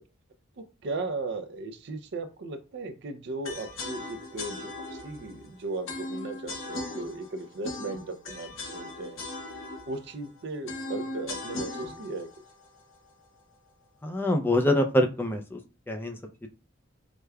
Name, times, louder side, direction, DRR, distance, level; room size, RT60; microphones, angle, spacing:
voice 1, 0.6-9.2 9.9-12.3, right 2 dB, 60° right, 8 dB, 0.4 m, -37 dB
sound 1, 3.4-13.5, left 2 dB, 75° left, 0.8 m, -39 dB
voice 2, 14.0-15.6 15.9-16.2, left 1 dB, 10° left, 4 dB, 0.4 m, -25 dB
4.8 x 2.2 x 2.2 m, 0.31 s
head